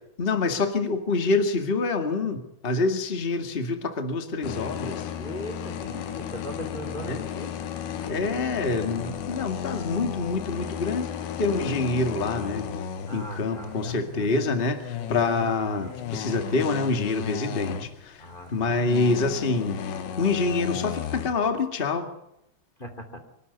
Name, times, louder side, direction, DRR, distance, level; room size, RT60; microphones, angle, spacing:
voice 1, 0.2-5.1 7.0-7.2 8.1-11.1 11.4-12.7 13.1-19.8 20.2-22.1, left 3 dB, 40° left, 6 dB, 0.8 m, -26 dB
sound 1, 4.4-18.3 18.7-21.3, left 8 dB, 90° left, 3.7 m, -34 dB
voice 2, 5.2-7.5 13.0-14.3 18.2-18.9 22.8-23.2, equal, 15° left, 5 dB, 2.3 m, -39 dB
26.0 x 12.5 x 9.6 m, 0.82 s
omnidirectional pair, 5.0 m